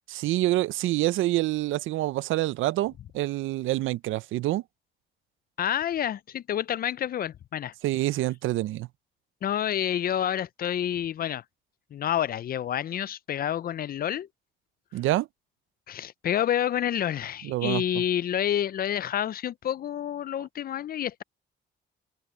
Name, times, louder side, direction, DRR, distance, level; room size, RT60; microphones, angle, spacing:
voice 1, 0.1-4.6 7.8-8.9 14.9-15.3 17.4-17.8, right 16 dB, 80° right, 0.5 m, -26 dB
voice 2, 5.6-7.7 9.4-11.4 11.9-14.3 15.9-21.2, left 10 dB, 50° left, 0.4 m, -28 dB
open air
cardioid pair, 90°, 20 cm